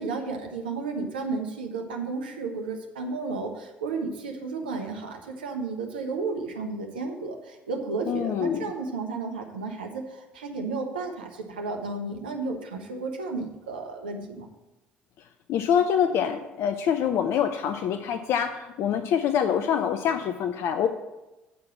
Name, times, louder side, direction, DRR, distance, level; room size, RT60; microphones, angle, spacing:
voice 1, 0.0-14.5, right 3 dB, 80° right, 3 dB, 0.9 m, -33 dB
voice 2, 8.1-8.6 15.5-20.9, left 8 dB, 55° left, 8 dB, 0.5 m, -25 dB
8.2 x 4.8 x 7.2 m, 1.0 s
hypercardioid pair, 55°, 5 cm